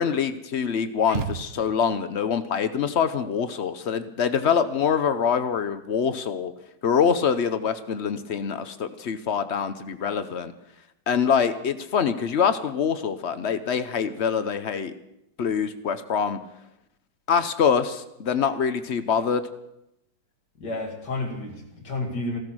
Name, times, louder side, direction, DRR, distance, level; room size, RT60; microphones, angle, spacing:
voice 1, 0.0-6.5 6.8-10.5 11.1-14.9 15.4-16.4 17.3-19.4, left 7 dB, 55° left, 12 dB, 0.8 m, -24 dB
sound 1, 1.1-2.1, right 6 dB, 55° right, 0.7 m, -33 dB
voice 2, 20.6-22.4, left 2 dB, 70° left, 2 dB, 3.0 m, -31 dB
15.0 x 13.5 x 6.1 m, 0.85 s
omnidirectional pair, 1.9 m